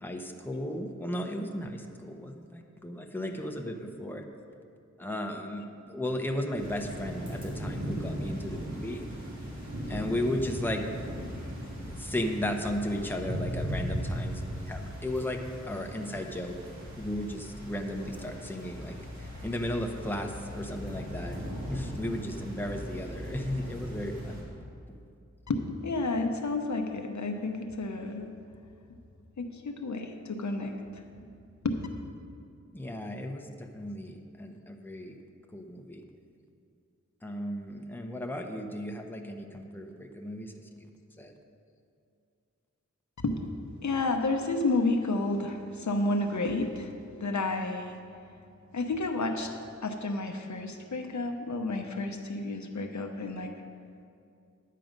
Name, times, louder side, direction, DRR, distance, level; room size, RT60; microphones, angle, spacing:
voice 1, 0.0-4.2 5.0-9.0 9.9-10.9 11.9-16.5 17.0-24.4 32.7-35.2 35.5-36.0 37.2-40.9 41.2-41.3, left 1 dB, 5° left, 3 dB, 0.9 m, -35 dB
sound 1, 6.6-24.4, equal, 70° right, 3.0 m, -38 dB
voice 2, 25.5-28.3 29.4-31.0 31.6-31.8 43.2-43.4 43.8-46.9 47.2-47.9 48.7-49.5 49.8-53.5, left 2 dB, 75° left, 4 dB, 0.8 m, -31 dB
11.0 x 7.6 x 5.2 m, 2.4 s
wide cardioid pair, 65°, 29 cm